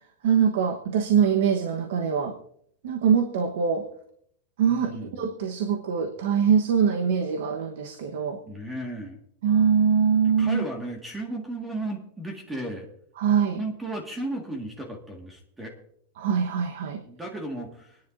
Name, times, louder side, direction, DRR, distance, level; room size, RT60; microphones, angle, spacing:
voice 1, 0.2-2.4 2.8-3.9 4.6-8.4 9.4-10.6 13.2-13.6 16.2-17.0, right 7 dB, 70° right, 5 dB, 1.1 m, -23 dB
voice 2, 4.7-5.2 8.5-9.2 10.4-12.9 13.6-15.7 17.1-18.0, right 1 dB, 5° right, 2 dB, 1.8 m, -34 dB
26.5 x 10.5 x 2.6 m, 0.68 s
supercardioid pair, 175°, 0 cm